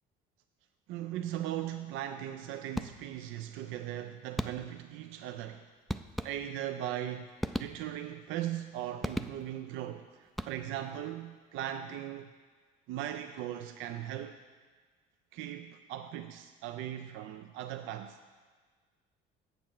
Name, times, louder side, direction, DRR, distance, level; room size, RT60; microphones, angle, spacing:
voice 1, 0.9-5.6 6.2-7.3 7.6-12.3 12.9-14.3 15.3-18.2, right 11 dB, 70° right, 0.5 m, -38 dB
sound 1, 2.7-3.3 4.4-4.9 5.9-6.8 7.4-8.2 9.0-9.7 10.3-10.9, equal, ahead, 0.3 m, -38 dB
7.1 x 6.9 x 5.8 m
supercardioid pair, 75°, 21 cm